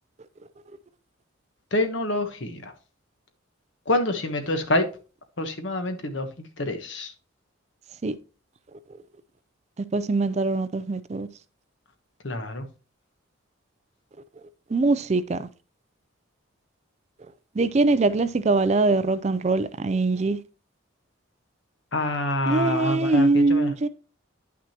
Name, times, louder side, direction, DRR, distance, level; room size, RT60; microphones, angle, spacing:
voice 1, 1.7-2.7 3.9-4.9 5.4-7.1 12.2-12.6 21.9-23.7, left 1 dB, 65° left, 1.1 m, -27 dB
voice 2, 9.9-11.3 14.7-15.5 17.6-20.4 22.5-23.9, right 3 dB, 35° right, 0.4 m, -22 dB
9.7 x 6.0 x 2.9 m
head